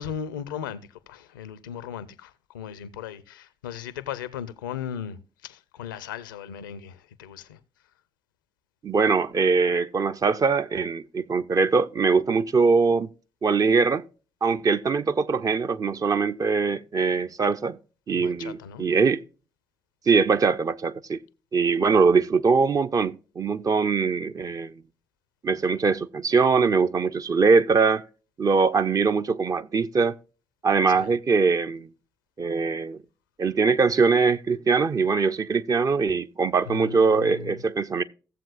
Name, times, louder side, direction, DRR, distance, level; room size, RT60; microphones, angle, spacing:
voice 1, 0.0-7.6 18.1-18.9 30.9-31.1 36.7-37.6, left 8 dB, 80° left, 0.5 m, -37 dB
voice 2, 8.8-13.1 13.4-14.0 14.4-17.8 18.1-19.2 20.1-21.2 21.5-24.8 25.4-28.0 28.4-30.1 30.6-31.9 32.4-33.0 33.4-38.0, right 4 dB, 35° right, 0.6 m, -22 dB
16.5 x 7.4 x 2.4 m
figure-of-eight pair, 40°, 10 cm